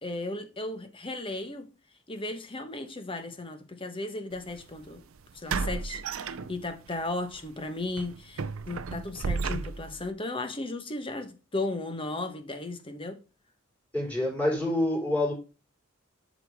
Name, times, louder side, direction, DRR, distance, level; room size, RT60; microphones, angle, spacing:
voice 1, 0.0-1.7 2.1-5.0 5.3-13.2, left 2 dB, 25° left, 1.1 m, -35 dB
sound 1, 4.4-4.5 5.5-6.9 7.3-7.5 8.0-10.1, right 4 dB, 70° right, 0.6 m, -33 dB
voice 2, 13.9-15.3, left 1 dB, 5° left, 4.5 m, -27 dB
7.7 x 6.3 x 3.6 m
head